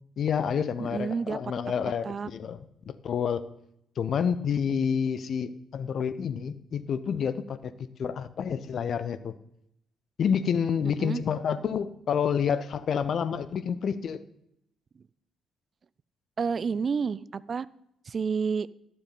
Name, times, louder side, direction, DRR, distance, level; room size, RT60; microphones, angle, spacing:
voice 1, 0.2-2.6 2.8-3.4 4.0-7.7 8.0-9.3 10.2-14.2, left 7 dB, 50° left, 14 dB, 0.7 m, -28 dB
voice 2, 0.8-1.4 2.0-2.3 10.8-11.2 15.0-15.1 16.4-17.7 18.1-18.7, right 5 dB, 40° right, 19 dB, 0.4 m, -30 dB
12.0 x 12.0 x 4.0 m, 0.77 s
figure-of-eight pair, 40°, 0 cm